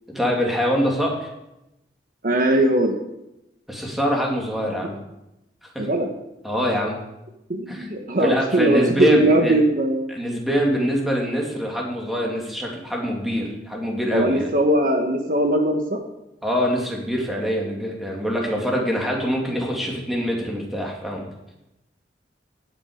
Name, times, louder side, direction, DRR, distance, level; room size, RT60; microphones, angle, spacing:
voice 1, 0.1-1.3 3.7-5.0 5.7-5.9 6.4-7.0 7.7-7.9 8.2-9.6 10.1-14.5 16.4-21.2, equal, ahead, -1 dB, 2.3 m, -24 dB
voice 2, 2.2-2.9 5.8-6.1 7.5-10.1 14.1-16.0, right 1 dB, 50° right, 4 dB, 1.2 m, -20 dB
17.0 x 7.4 x 5.1 m, 0.90 s
head